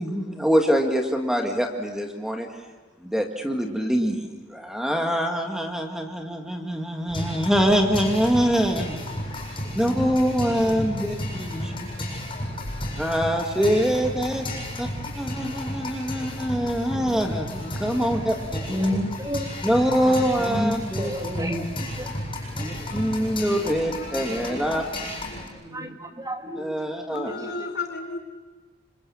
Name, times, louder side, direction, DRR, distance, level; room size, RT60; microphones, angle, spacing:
voice 1, 0.0-2.5 3.0-9.1 9.7-11.2 11.5-11.7 13.0-14.4 14.8-14.9 15.2-18.6 19.6-21.1 21.6-21.7 22.9-24.8 26.6-27.5, equal, 5° right, 2 dB, 2.0 m, -24 dB
sound 1, 7.1-25.5, left 1 dB, 25° left, 7.9 m, -33 dB
voice 2, 9.8-10.1 10.4-10.9 11.3-12.0 13.6-13.8 14.3-14.4 15.0-15.1 15.4-15.5 16.7-17.2 18.7-19.5 20.1-22.3 22.5-22.9 24.4-24.5 24.8-25.1 25.5-26.8, equal, 20° right, 4 dB, 1.9 m, -32 dB
voice 3, 17.6-19.5 22.6-23.1 23.5-24.6 25.2-25.4 27.1-28.2, left 3 dB, 55° left, 5 dB, 4.2 m, -38 dB
27.0 x 26.0 x 7.2 m, 1.2 s
head